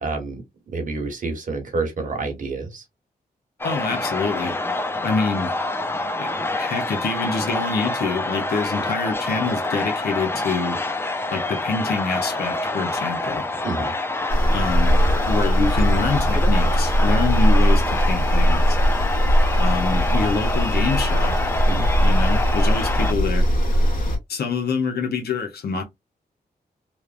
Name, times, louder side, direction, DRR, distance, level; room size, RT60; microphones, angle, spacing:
voice 1, 0.0-0.4 0.7-2.8 13.6-13.9 21.6-21.9, right 3 dB, 55° right, 1.0 m, -28 dB
voice 2, 3.6-4.6 5.0-5.5 6.2-6.3 6.6-10.8 11.3-13.5 14.5-18.8 19.6-21.3 22.0-23.5 24.3-25.8, left 4 dB, 80° left, 0.7 m, -26 dB
sound 1, 3.6-23.1, left 2 dB, 15° left, 0.4 m, -27 dB
sound 2, 14.3-24.2, equal, 55° left, 1.2 m, -19 dB
3.2 x 2.0 x 2.4 m
wide cardioid pair, 100°, 16 cm